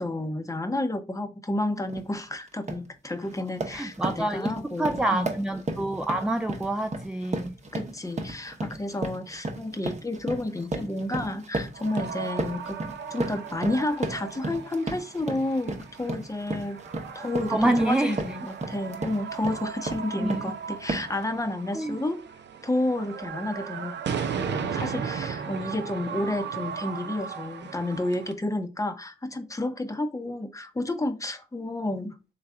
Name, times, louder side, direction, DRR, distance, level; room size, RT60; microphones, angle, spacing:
voice 1, 0.0-5.3 7.7-12.8 13.1-16.8 17.1-22.2 22.6-24.0 24.4-32.2, left 1 dB, 15° left, 0.7 m, -31 dB
sound 1, 1.9-2.1 2.5-2.9 3.3-20.5 20.9-21.2, right 2 dB, 35° right, 0.9 m, -34 dB
voice 2, 3.7-7.5 17.5-18.2 20.2-20.3 21.7-22.1, right 1 dB, 5° right, 0.4 m, -27 dB
sound 2, 11.7-28.3, right 6 dB, 65° right, 0.6 m, -36 dB
3.6 x 3.2 x 3.6 m
cardioid pair, 60°, 19 cm